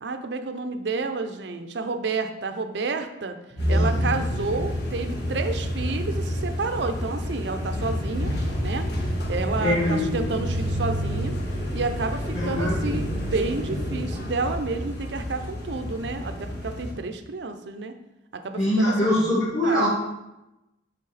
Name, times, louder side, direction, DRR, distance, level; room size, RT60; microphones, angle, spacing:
voice 1, 0.0-3.4 3.7-8.3 8.6-8.9 9.3-11.4 11.7-17.9 18.3-19.1 19.6-19.9, right 3 dB, 65° right, 7 dB, 0.5 m, -30 dB
voice 2, 3.5-4.0 9.6-10.1 12.3-13.0 18.5-19.9, left 1 dB, 40° left, -10 dB, 2.2 m, -23 dB
sound 1, 3.6-16.9, equal, 60° left, 1.4 m, -28 dB
6.5 x 3.6 x 4.0 m, 0.94 s
head